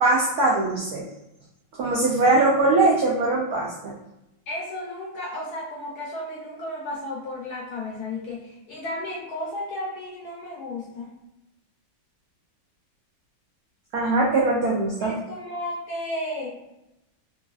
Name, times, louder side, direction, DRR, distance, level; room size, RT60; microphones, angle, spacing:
voice 1, 0.0-1.1 1.8-3.9 13.9-15.1, right 2 dB, 85° right, -3 dB, 0.8 m, -21 dB
voice 2, 4.5-11.1 15.0-16.6, left 1 dB, 70° left, -3 dB, 0.9 m, -33 dB
3.0 x 2.5 x 2.3 m, 0.89 s
omnidirectional pair, 2.2 m